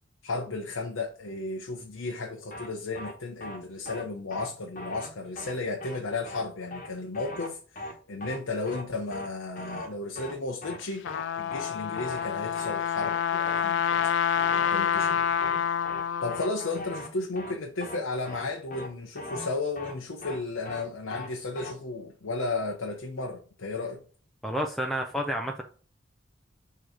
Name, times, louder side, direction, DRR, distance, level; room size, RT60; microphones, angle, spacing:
voice 1, 0.2-11.1 11.4-13.8 14.6-15.6 16.2-24.0, left 3 dB, 90° left, 0.8 m, -34 dB
sound 1, 2.5-2.7 2.9-3.1 3.4-3.6 3.9-4.0 4.3-4.5 4.8-5.1 5.4-5.5 5.8-6.0 6.3-6.4 6.7-6.9 7.1-7.5 7.8-7.9 8.2-8.4 8.7-8.8 9.1-9.3 9.6-9.9 10.2-10.3 10.6-10.8 11.1-11.2 11.5-11.7 12.0-12.3 12.5-12.7 13.0-13.2 13.5-13.6 13.9-14.1 14.4-14.7 15.0-15.1 15.4-15.6 15.9-16.0 16.3-16.5 16.7-17.1 17.4-17.5 17.8-18.0 18.3-18.4 18.7-18.9 19.2-19.5 19.8-19.9 20.2-20.4 20.7-20.8 21.1-21.3 21.6-21.7, left 1 dB, 40° left, 1.2 m, -39 dB
Trumpet, 10.8-16.8, left 8 dB, 65° left, 0.4 m, -27 dB
voice 2, 24.4-25.6, equal, ahead, 0.5 m, -30 dB
6.5 x 3.1 x 4.9 m
head